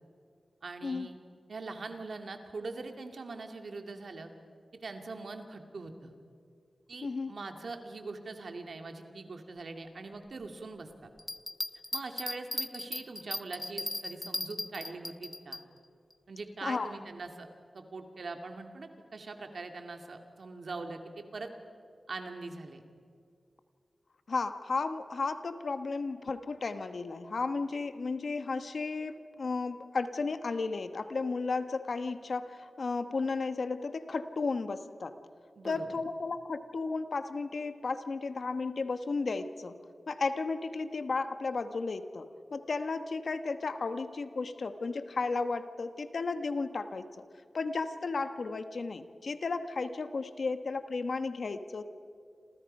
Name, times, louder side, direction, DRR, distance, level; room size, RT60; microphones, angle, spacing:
voice 1, 0.6-1.1 1.5-4.3 4.8-6.1 6.9-10.9 11.9-15.6 16.3-17.5 17.7-21.5 22.1-22.8 35.6-35.9, right 3 dB, 70° right, 5 dB, 2.3 m, -42 dB
voice 2, 7.0-7.3 16.6-16.9 24.3-35.2 35.6-39.8 40.1-47.2 47.5-51.8, left 4 dB, 70° left, 9 dB, 1.3 m, -34 dB
Bell, 11.2-15.6 16.1-16.2, left 2 dB, 25° left, 0.8 m, -37 dB
28.5 x 28.0 x 5.5 m, 2.3 s
cardioid pair, 65°, 0 cm